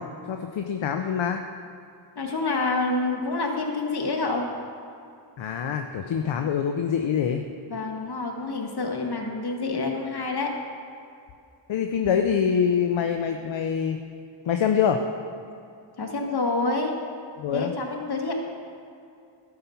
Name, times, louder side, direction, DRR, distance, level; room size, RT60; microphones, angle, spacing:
voice 1, 0.0-1.4 5.4-7.4 11.7-14.0 14.5-15.0 17.4-17.7, left 7 dB, 70° left, 5 dB, 0.7 m, -25 dB
voice 2, 2.1-4.5 7.7-10.5 16.0-16.9 17.5-18.3, left 3 dB, 55° left, 1 dB, 1.7 m, -27 dB
11.5 x 5.8 x 7.0 m, 2.5 s
cardioid pair, 55°, 47 cm